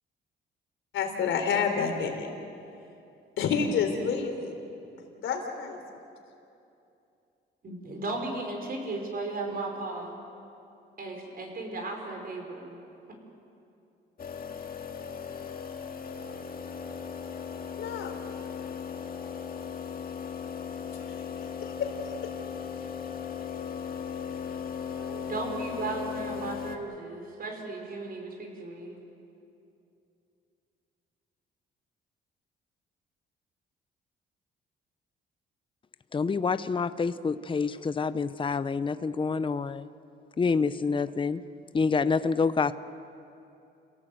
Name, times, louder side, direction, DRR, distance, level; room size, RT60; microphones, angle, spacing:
voice 1, 0.9-2.3 3.4-4.5 5.2-5.8 17.8-18.2 21.6-21.9 22.2-22.3, left 6 dB, 75° left, 4 dB, 3.6 m, -28 dB
voice 2, 7.6-10.1 11.0-12.8 25.0-29.0, right 3 dB, 50° right, 2 dB, 5.3 m, -36 dB
sound 1, 14.2-26.8, left 7 dB, 50° left, 2.0 m, -37 dB
voice 3, 36.1-39.9 40.4-41.4 41.7-42.7, left 5 dB, 25° left, 13 dB, 0.7 m, -27 dB
28.5 x 17.0 x 7.9 m, 2.7 s
cardioid pair, 90°, 20 cm